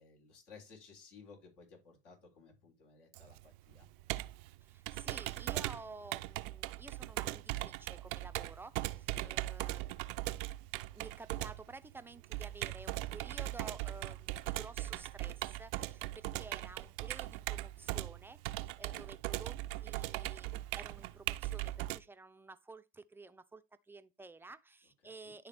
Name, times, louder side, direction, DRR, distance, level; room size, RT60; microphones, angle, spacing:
voice 1, 0.0-3.9 8.9-9.4 25.0-25.4, left 5 dB, 65° left, 3.8 m, -58 dB
Computer keyboard, 3.1-22.0, right 17 dB, 60° right, 0.5 m, -39 dB
voice 2, 4.6-10.1 10.9-25.5, right 3 dB, 5° right, 0.6 m, -52 dB
10.5 x 3.5 x 3.4 m
hypercardioid pair, 85°, 29 cm